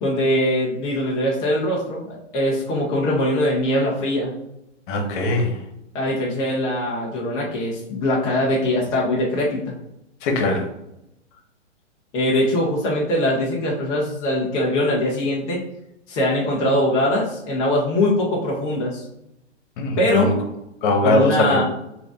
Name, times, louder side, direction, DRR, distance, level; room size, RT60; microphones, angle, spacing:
voice 1, 0.0-4.4 5.9-9.7 12.1-15.6 16.1-19.0 20.0-20.3 21.0-21.6, left 1 dB, 10° left, -5 dB, 0.4 m, -22 dB
voice 2, 4.9-5.6 10.2-10.6 19.8-20.3 20.8-21.6, left 2 dB, 45° left, 3 dB, 1.1 m, -21 dB
3.8 x 2.5 x 3.5 m, 0.82 s
hypercardioid pair, 130°, 36 cm